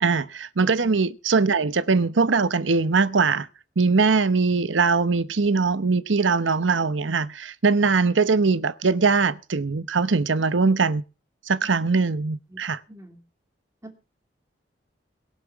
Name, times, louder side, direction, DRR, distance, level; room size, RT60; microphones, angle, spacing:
voice 1, 0.0-3.5 3.8-11.0 11.5-12.8, right 4 dB, 80° right, 0.8 m, -21 dB
voice 2, 12.9-13.2 13.8-14.0, right 1 dB, 15° right, 2.6 m, -44 dB
22.5 x 7.5 x 4.6 m
head